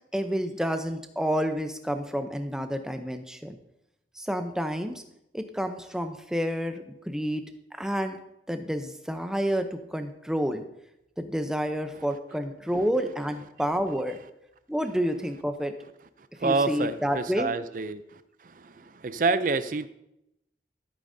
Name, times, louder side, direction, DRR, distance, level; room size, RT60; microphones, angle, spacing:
voice 1, 0.1-3.6 4.2-5.0 5.3-7.4 7.7-8.2 8.5-10.6 11.2-14.2 14.7-15.7 16.4-17.5, equal, 5° right, 6 dB, 0.6 m, -29 dB
voice 2, 16.4-18.0 18.6-19.9, right 3 dB, 45° right, 13 dB, 0.5 m, -27 dB
13.5 x 8.6 x 2.7 m, 0.83 s
head